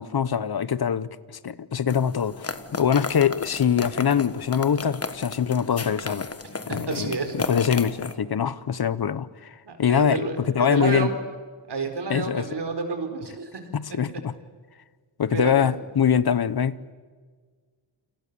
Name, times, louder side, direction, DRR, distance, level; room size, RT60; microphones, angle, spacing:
voice 1, 0.0-6.3 6.7-11.1 12.1-12.5 13.7-14.3 15.2-16.8, left 8 dB, 50° left, 1.0 m, -24 dB
sound 1, 1.9-8.1, left 4 dB, 30° left, 1.4 m, -34 dB
voice 2, 6.7-7.3 9.7-11.2 11.7-13.6 15.3-15.7, right 4 dB, 55° right, 4.6 m, -29 dB
29.0 x 27.0 x 7.0 m
wide cardioid pair, 140°, 49 cm